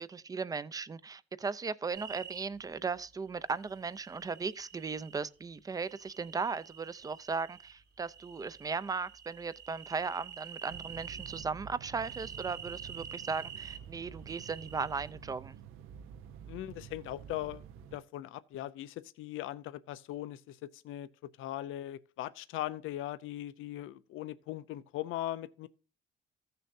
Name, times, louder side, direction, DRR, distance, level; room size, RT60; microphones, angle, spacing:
voice 1, 0.0-15.6, right 5 dB, 20° right, 0.5 m, -37 dB
sound 1, 1.9-2.4 3.6-5.2 5.8-7.7 8.0-11.5 12.0-13.8 14.3-15.1, right 8 dB, 60° right, 3.2 m, -48 dB
sound 2, 10.7-18.0, right 8 dB, 85° right, 0.8 m, -49 dB
voice 2, 16.5-17.6 17.9-21.1 21.4-25.7, left 14 dB, 80° left, 0.6 m, -39 dB
15.5 x 6.7 x 2.6 m
cardioid pair, 155°, 20 cm